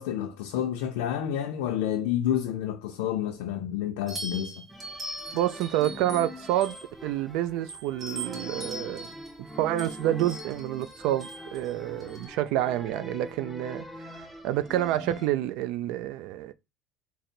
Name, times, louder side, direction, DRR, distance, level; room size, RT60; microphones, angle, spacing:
voice 1, 0.0-4.7, left 10 dB, 85° left, 0.5 m, -29 dB
sound 1, 4.1-7.2 7.7-12.3, right 1 dB, 25° right, 2.3 m, -41 dB
sound 2, 4.7-15.3, equal, 5° left, 0.6 m, -43 dB
voice 2, 5.3-6.8 7.0-9.1 9.4-13.8 14.1-16.5, right 13 dB, 70° right, 0.4 m, -28 dB
3.8 x 2.0 x 4.2 m
supercardioid pair, 105°, 0 cm